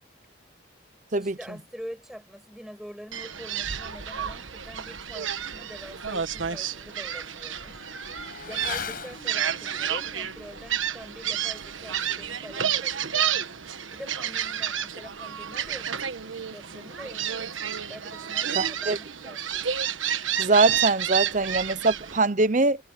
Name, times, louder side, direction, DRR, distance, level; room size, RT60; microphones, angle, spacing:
voice 1, 1.1-7.8 8.5-13.5 13.9-17.5 17.9-19.5, equal, ahead, 7.4 m, -45 dB
Gull seagull, 3.1-22.2, right 9 dB, 90° right, 1.4 m, -30 dB
Motorcycle / Accelerating revving vroom, 6.6-16.0 16.3-16.4, left 6 dB, 50° left, 8.0 m, -44 dB
voice 2, 18.6-19.0 20.4-22.8, right 3 dB, 40° right, 0.9 m, -22 dB
head